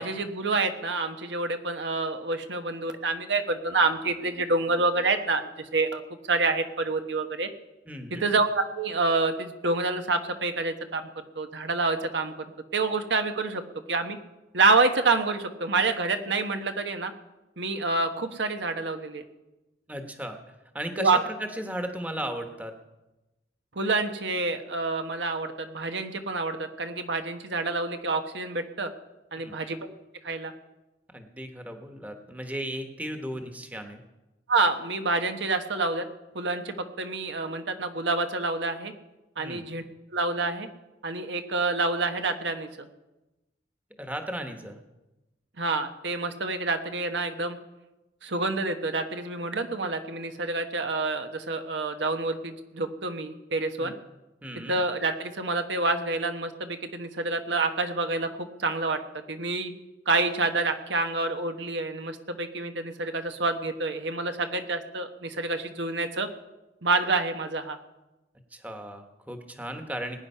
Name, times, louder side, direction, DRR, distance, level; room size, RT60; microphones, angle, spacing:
voice 1, 0.0-6.0 6.3-7.5 8.1-11.0 11.3-12.5 12.7-13.6 13.9-14.2 14.5-17.1 17.6-19.2 21.0-21.2 23.7-28.9 29.3-29.9 30.2-30.5 34.5-36.1 36.3-38.9 39.4-39.8 40.1-40.7 41.0-42.9 45.6-47.6 48.2-53.9 54.5-59.0 59.3-59.7 60.1-66.3 66.8-67.8, right 3 dB, 80° right, 7 dB, 1.2 m, -27 dB
voice 2, 7.9-8.3 19.9-22.7 29.4-29.5 31.1-34.0 39.4-39.6 44.0-44.8 53.8-53.9 54.4-54.8 68.5-70.2, right 1 dB, 10° right, 5 dB, 1.2 m, -36 dB
20.0 x 9.5 x 5.6 m, 1.0 s
head